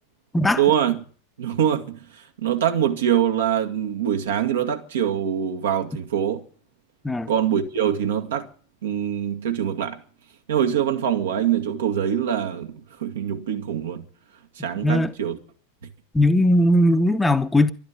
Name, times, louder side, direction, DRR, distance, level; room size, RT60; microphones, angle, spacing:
voice 1, 0.6-1.0 1.4-2.0 2.4-6.4 7.3-8.5 8.8-10.0 10.5-14.1 14.6-15.4, right 9 dB, 60° right, 2.1 m, -24 dB
voice 2, 16.1-17.7, left 1 dB, 5° left, 1.0 m, -18 dB
12.5 x 12.0 x 8.6 m
figure-of-eight pair, 90°, 0 cm